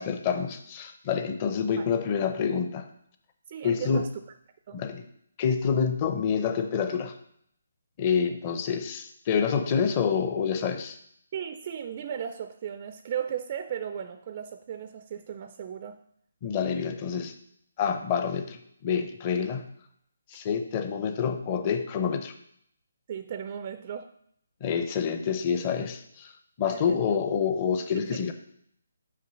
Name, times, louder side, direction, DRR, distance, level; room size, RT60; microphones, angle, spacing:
voice 1, 0.0-2.8 3.6-4.0 4.7-5.0 5.4-7.1 8.0-11.0 16.4-17.3 17.8-19.7 20.3-22.3 24.6-26.3 26.6-28.3, left 6 dB, 20° left, 7 dB, 0.6 m, -27 dB
voice 2, 3.5-4.1 4.7-4.8 11.3-16.0 23.1-24.1 26.6-27.0 28.0-28.3, right 8 dB, 30° right, 9 dB, 0.3 m, -36 dB
5.8 x 5.2 x 6.2 m, 0.69 s
hypercardioid pair, 170°, 0 cm